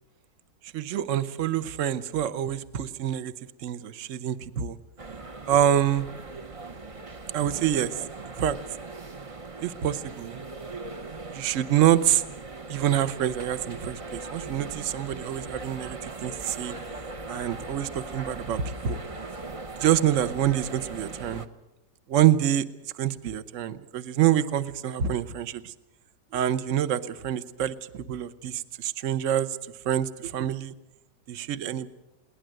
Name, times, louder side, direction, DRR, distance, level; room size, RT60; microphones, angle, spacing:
voice 1, 0.7-3.3 3.6-4.8 5.5-6.1 7.3-8.0 8.4-8.6 9.6-10.4 11.3-12.2 12.7-16.7 17.3-19.0 19.8-21.5 22.1-22.6 22.9-25.7 26.3-29.6 29.8-30.7 31.3-31.9, right 10 dB, 50° right, 14 dB, 1.1 m, -26 dB
sound 1, 5.0-21.5, right 3 dB, 35° right, 0.5 m, -39 dB
21.5 x 18.5 x 7.6 m, 0.89 s
omnidirectional pair, 1.9 m